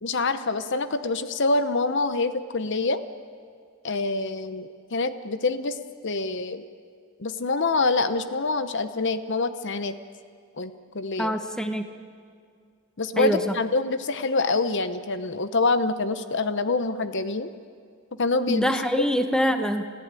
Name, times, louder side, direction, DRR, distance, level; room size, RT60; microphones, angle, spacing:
voice 1, 0.0-3.0 3.8-5.8 6.0-6.6 7.2-9.9 10.6-11.3 13.0-17.5 18.2-18.7, left 3 dB, 55° left, 12 dB, 0.9 m, -26 dB
voice 2, 11.2-11.9 13.2-13.4 18.5-20.0, equal, 5° left, 7 dB, 1.1 m, -25 dB
30.0 x 15.0 x 9.0 m, 2.2 s
head